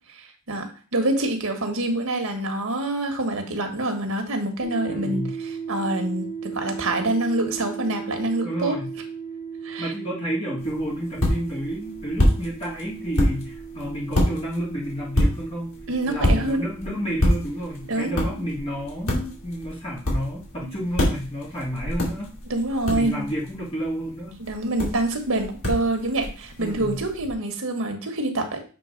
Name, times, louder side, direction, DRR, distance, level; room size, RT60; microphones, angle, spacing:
voice 1, 0.2-8.8 9.6-9.9 15.9-16.6 17.9-18.4 20.6-20.7 22.5-23.2 24.4-28.6, right 2 dB, 80° right, 5 dB, 1.4 m, -26 dB
sound 1, 4.6-20.1, right 6 dB, 15° right, 2.4 m, -38 dB
voice 2, 4.9-5.3 8.4-8.9 9.8-15.7 16.1-22.3 22.9-24.3 26.6-27.0, equal, 30° left, -7 dB, 1.9 m, -30 dB
sound 2, 10.6-27.3, equal, 90° left, 2.6 m, -28 dB
7.6 x 3.3 x 5.1 m, 0.37 s
head